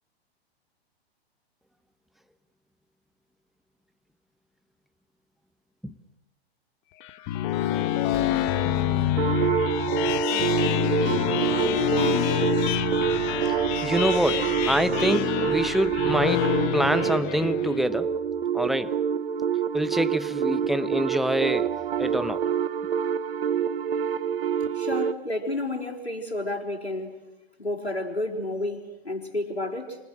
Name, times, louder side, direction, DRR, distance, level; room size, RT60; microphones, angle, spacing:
sound 1, 7.0-17.9, left 12 dB, 35° left, 1.5 m, -27 dB
sound 2, 9.2-25.2, right 8 dB, 60° right, 1.0 m, -26 dB
voice 1, 13.8-18.1 18.5-18.9 19.7-21.7 22.0-22.4, equal, ahead, 11 dB, 1.0 m, -26 dB
voice 2, 24.7-27.2 27.6-30.0, left 2 dB, 85° left, -1 dB, 4.6 m, -31 dB
29.5 x 27.0 x 6.4 m, 1.0 s
figure-of-eight pair, 105°, 31 cm